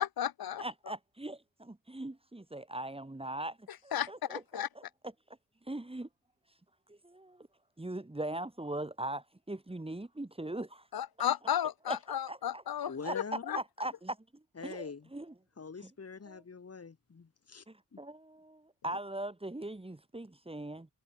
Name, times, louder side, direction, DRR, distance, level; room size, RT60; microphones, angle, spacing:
voice 1, 0.0-0.6 3.9-4.7 10.9-13.6, left 10 dB, 75° left, 1.1 m, -34 dB
voice 2, 0.6-4.8 5.7-6.1 6.9-7.5 7.8-11.0 11.9-13.1 13.5-14.2 14.6-15.3 16.3-16.4 17.7-20.9, right 1 dB, 15° right, 3.6 m, -41 dB
voice 3, 12.9-13.6 14.6-15.1 15.6-17.6 17.9-18.0, left 5 dB, 40° left, 2.2 m, -44 dB
wide cardioid pair, 90°, 37 cm